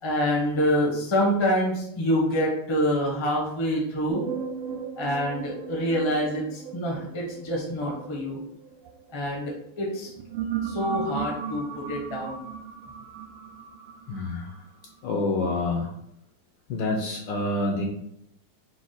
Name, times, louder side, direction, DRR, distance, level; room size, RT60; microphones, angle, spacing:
voice 1, 0.0-4.3 5.0-8.4 9.1-10.1 10.6-12.4, equal, 35° left, -2 dB, 0.4 m, -26 dB
sound 1, 4.1-9.4 10.0-14.9, right 7 dB, 90° right, 1.5 m, -36 dB
voice 2, 14.1-14.5 15.0-15.9 16.7-17.9, left 2 dB, 75° left, 1 dB, 1.1 m, -27 dB
4.7 x 2.1 x 4.0 m, 0.76 s
omnidirectional pair, 2.4 m